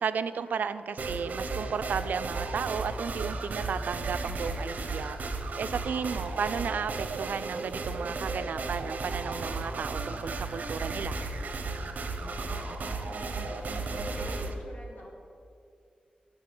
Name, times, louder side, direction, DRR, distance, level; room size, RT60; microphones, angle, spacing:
voice 1, 0.0-5.2 5.6-11.2, right 6 dB, 85° right, 13 dB, 0.4 m, -34 dB
sound 1, 1.0-14.5, right 3 dB, 65° right, 0.8 m, -34 dB
voice 2, 5.9-6.2 12.2-15.1, left 1 dB, 70° left, -2 dB, 2.2 m, -48 dB
8.2 x 5.5 x 7.6 m, 2.4 s
wide cardioid pair, 115°, 3 cm